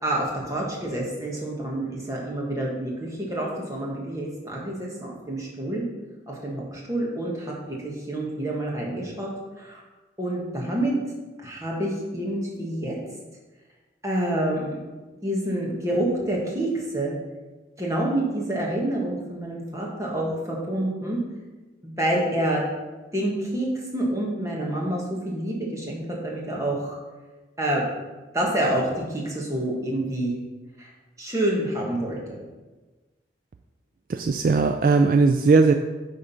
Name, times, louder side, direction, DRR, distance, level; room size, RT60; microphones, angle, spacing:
voice 1, 0.0-5.8 6.3-7.5 7.8-9.3 9.6-9.8 10.2-10.9 11.4-13.0 14.0-14.8 15.2-17.1 17.8-21.2 21.8-22.6 23.1-27.0 27.6-27.8 28.3-30.3 30.8-30.9 31.2-32.4, right 1 dB, 15° right, -3 dB, 1.5 m, -27 dB
voice 2, 34.1-35.7, right 4 dB, 50° right, 6 dB, 0.3 m, -18 dB
8.7 x 3.7 x 5.6 m, 1.2 s
head